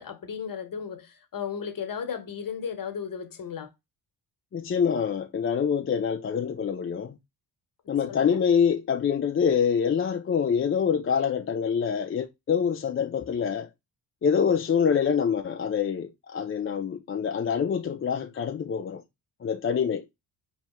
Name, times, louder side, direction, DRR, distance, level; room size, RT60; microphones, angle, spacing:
voice 1, 0.0-3.7 8.1-8.4 13.2-13.3, left 7 dB, 45° left, 1.2 m, -35 dB
voice 2, 4.5-7.1 7.9-13.7 14.2-19.0 19.4-20.0, left 7 dB, 30° left, 0.5 m, -25 dB
4.2 x 3.2 x 3.0 m
supercardioid pair, 65°, 46 cm